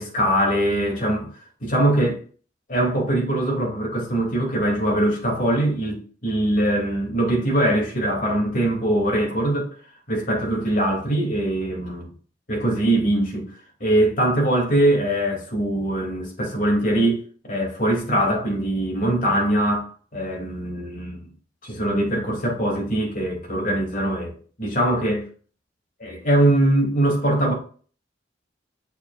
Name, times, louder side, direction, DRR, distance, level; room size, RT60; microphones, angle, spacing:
voice 1, 0.0-1.3 1.6-2.2 2.7-9.8 10.1-12.1 12.5-13.5 13.8-21.3 21.6-25.3 26.0-27.5, right 1 dB, 50° left, 2.9 m, -22 dB
7.4 x 6.8 x 2.5 m
head